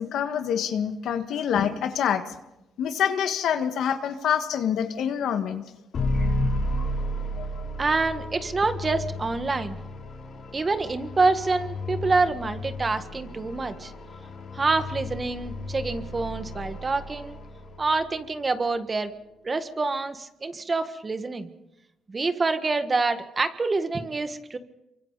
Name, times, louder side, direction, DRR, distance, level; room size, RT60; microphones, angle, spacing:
voice 1, 0.0-2.2 2.8-5.6, left 8 dB, 75° left, 7 dB, 1.7 m, -26 dB
sound 1, 5.9-18.1, left 1 dB, 55° left, 4.5 m, -32 dB
voice 2, 7.8-9.8 10.5-13.9 14.5-17.4 17.8-19.1 19.4-21.5 22.1-24.6, right 3 dB, 30° right, 9 dB, 1.6 m, -26 dB
27.5 x 24.0 x 4.1 m, 0.89 s
cardioid pair, 90°, 0 cm